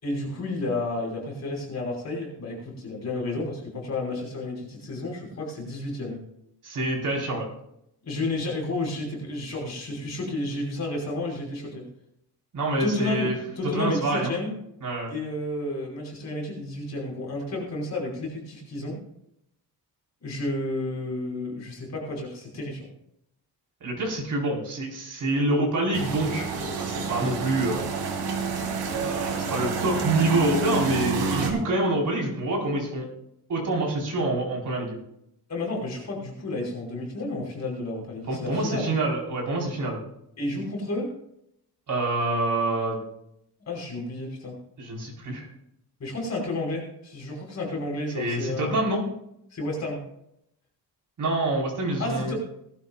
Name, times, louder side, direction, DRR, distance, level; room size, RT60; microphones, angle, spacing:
voice 1, 0.0-6.2 8.1-11.9 12.8-13.3 13.6-14.5 15.1-19.0 20.2-22.9 35.5-38.9 40.4-41.1 43.7-44.6 46.0-48.8 49.5-50.0 52.0-52.4, left 2 dB, 40° left, -2 dB, 5.5 m, -31 dB
voice 2, 6.6-7.5 12.5-13.3 13.7-14.4 14.8-15.1 23.8-26.5 26.8-28.1 28.9-33.1 33.5-35.0 38.3-40.0 41.9-43.0 44.8-45.5 48.1-49.1 51.2-52.4, right 2 dB, 45° right, -2 dB, 4.7 m, -26 dB
sound 1, 25.9-31.5, right 4 dB, 85° right, 2.6 m, -28 dB
19.5 x 12.5 x 2.5 m, 0.78 s
wide cardioid pair, 170°, 41 cm